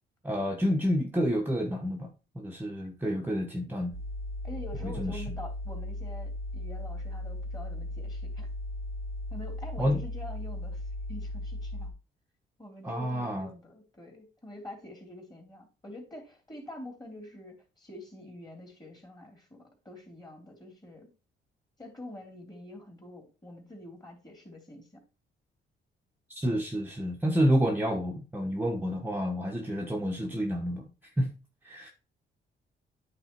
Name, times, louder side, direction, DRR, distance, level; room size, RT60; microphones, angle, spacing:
voice 1, 0.2-2.1 2.3-3.9 4.8-5.2 9.8-10.0 12.8-13.5 26.3-30.9 31.2-31.3 31.6-31.9, equal, 10° right, 1.1 m, -29 dB
sound 1, 3.9-11.9, left 1 dB, 75° left, 2.7 m, -37 dB
voice 2, 4.4-8.5 9.3-11.9 12.6-21.1 21.8-25.0, left 1 dB, 20° left, 3.0 m, -46 dB
8.9 x 3.6 x 4.4 m
cardioid pair, 90°, 20 cm